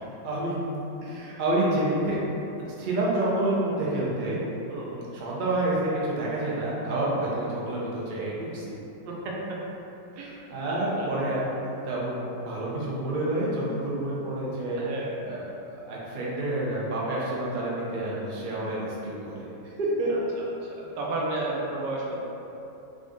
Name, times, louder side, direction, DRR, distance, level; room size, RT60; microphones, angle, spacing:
voice 1, 0.2-0.6 1.0-2.2 2.8-4.4 5.1-8.8 10.1-11.4 11.8-14.8 15.2-19.5 19.8-20.1, right 1 dB, 65° right, -6 dB, 0.5 m, -28 dB
voice 2, 4.7-5.1 9.1-9.4 10.2-11.3 14.8-15.1 20.4-22.2, right 2 dB, 90° right, -3 dB, 1.3 m, -33 dB
3.7 x 2.6 x 3.6 m, 2.9 s
omnidirectional pair, 1.9 m